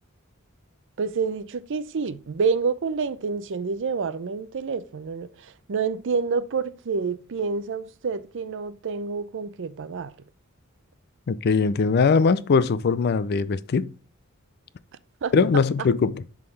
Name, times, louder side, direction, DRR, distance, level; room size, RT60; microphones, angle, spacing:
voice 1, 1.0-5.3 5.7-10.1 15.2-15.3, right 5 dB, 60° right, 0.5 m, -28 dB
voice 2, 11.3-13.9 15.3-16.2, left 5 dB, 50° left, 0.4 m, -21 dB
11.0 x 3.8 x 3.2 m
head